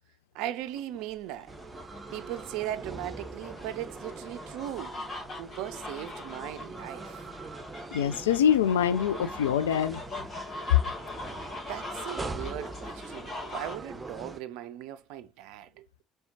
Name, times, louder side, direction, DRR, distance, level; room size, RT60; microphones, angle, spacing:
voice 1, 0.3-1.5 2.1-5.0 5.4-7.3 11.3-16.0, right 12 dB, 60° right, 0.4 m, -38 dB
sound 1, 0.7-13.8, left 2 dB, 40° left, 2.3 m, -42 dB
sound 2, 1.5-14.4, right 2 dB, 20° right, 0.7 m, -43 dB
voice 2, 7.9-10.0, left 8 dB, 75° left, 0.3 m, -25 dB
4.2 x 3.3 x 2.7 m
figure-of-eight pair, 55°, 0 cm